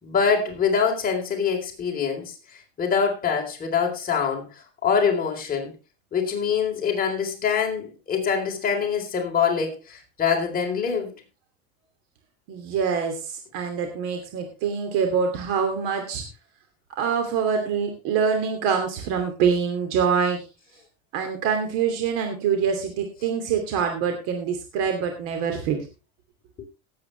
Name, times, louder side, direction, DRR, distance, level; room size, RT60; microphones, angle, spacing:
voice 1, 0.0-2.3 2.8-4.4 4.8-5.7 6.1-11.1, left 6 dB, 30° left, 0 dB, 4.1 m, -24 dB
voice 2, 12.5-16.2 17.0-20.5 21.1-25.8, right 6 dB, 70° right, 5 dB, 2.8 m, -25 dB
18.5 x 8.6 x 3.3 m, 0.30 s
cardioid pair, 140°, 32 cm